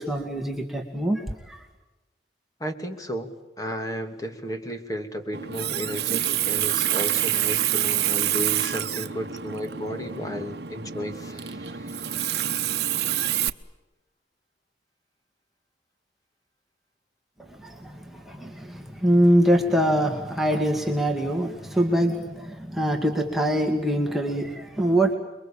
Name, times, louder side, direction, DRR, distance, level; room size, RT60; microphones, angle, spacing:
voice 1, 0.0-1.6 17.6-25.1, equal, ahead, 2 dB, 2.2 m, -24 dB
voice 2, 2.6-3.3 3.6-12.3, equal, 20° left, 6 dB, 2.7 m, -33 dB
Water tap faucet, 5.3-13.5, right 12 dB, 65° right, 1.0 m, -27 dB
28.5 x 22.5 x 8.8 m, 1.1 s
head